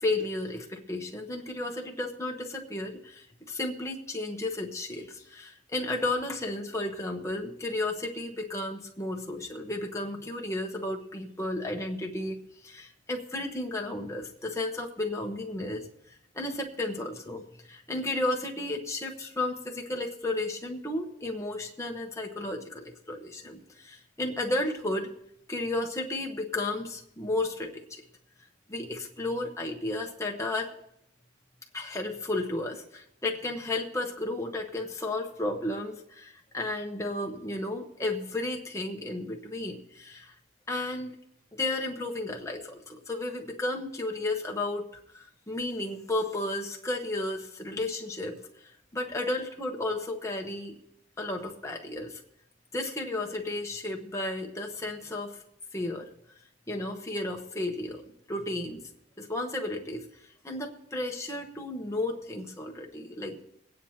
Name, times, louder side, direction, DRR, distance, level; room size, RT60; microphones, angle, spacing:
voice 1, 0.0-15.9 16.3-25.1 25.5-28.0 28.7-30.7 31.7-40.3 40.7-41.1 41.5-44.9 45.1-50.8 51.2-52.2 52.7-55.4 55.7-56.1 56.7-58.9 59.2-60.0 60.4-63.4, left 2 dB, 15° left, 1 dB, 1.1 m, -33 dB
23.0 x 9.2 x 2.9 m, 0.77 s
head